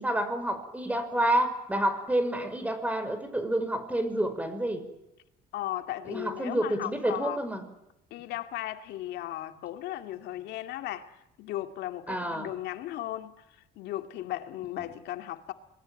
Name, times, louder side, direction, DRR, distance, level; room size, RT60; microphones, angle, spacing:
voice 1, 0.0-4.8 6.1-7.7 12.1-12.5 14.8-14.9, right 1 dB, 10° right, 5.7 m, -29 dB
voice 2, 5.5-7.4 8.1-15.5, left 14 dB, 80° left, 2.3 m, -36 dB
26.5 x 21.0 x 9.2 m
cardioid pair, 110°, 17 cm